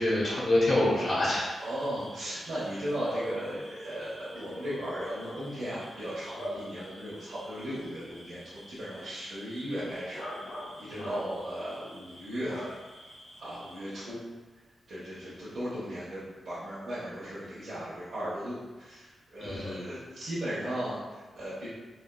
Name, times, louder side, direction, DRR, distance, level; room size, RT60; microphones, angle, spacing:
voice 1, 0.0-1.4 6.5-6.7 10.9-11.1 19.4-19.8, left 1 dB, 55° left, -7 dB, 1.0 m, -26 dB
Bark / Cricket, 0.9-14.1, equal, 85° left, 1.4 m, -44 dB
voice 2, 1.6-10.2 10.8-12.7 13.4-14.2 14.9-21.7, equal, 70° right, -11 dB, 0.8 m, -37 dB
3.3 x 2.3 x 2.2 m, 1.2 s
cardioid pair, 75°, 0 cm